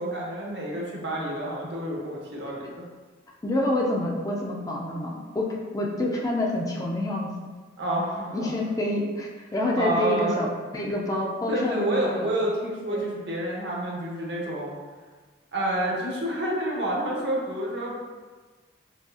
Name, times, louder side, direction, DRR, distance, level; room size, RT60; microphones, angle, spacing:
voice 1, 0.0-2.8 7.8-8.5 9.7-10.4 11.5-14.7 15.5-17.9, right 1 dB, 60° right, -3 dB, 0.9 m, -29 dB
voice 2, 3.4-7.3 8.3-12.3 12.9-13.0, left 1 dB, 20° left, -2 dB, 0.4 m, -27 dB
6.0 x 2.6 x 2.3 m, 1.4 s
head